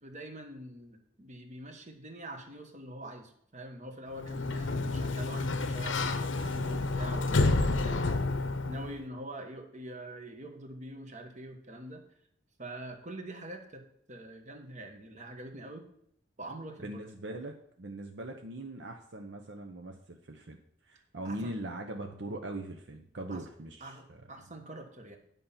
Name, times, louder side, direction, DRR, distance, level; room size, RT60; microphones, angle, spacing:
voice 1, 0.0-8.2 8.6-12.0 12.6-13.8 14.1-15.9 16.4-17.0 21.2-21.5 23.3-23.4 23.8-25.2, right 1 dB, 40° right, 4 dB, 1.3 m, -44 dB
Sliding door, 4.1-9.0, left 3 dB, 90° left, 0.8 m, -29 dB
voice 2, 16.8-20.6 20.8-24.2, right 1 dB, 65° right, 4 dB, 0.8 m, -41 dB
9.3 x 5.4 x 5.7 m, 0.70 s
head